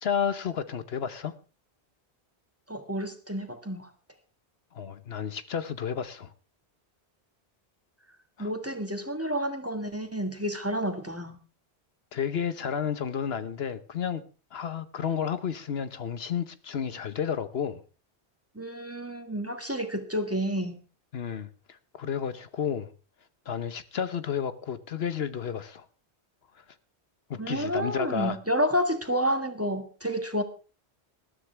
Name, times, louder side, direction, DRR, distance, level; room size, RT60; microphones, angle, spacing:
voice 1, 0.0-1.3 4.7-6.3 8.4-8.5 12.1-14.2 14.5-17.8 21.1-22.9 23.5-25.9 26.5-26.6 27.3-28.4, left 7 dB, 70° left, 1.1 m, -31 dB
voice 2, 2.7-3.9 8.4-11.4 18.5-20.8 27.4-30.4, equal, 15° right, 1.7 m, -30 dB
20.0 x 13.0 x 3.4 m
omnidirectional pair, 1.1 m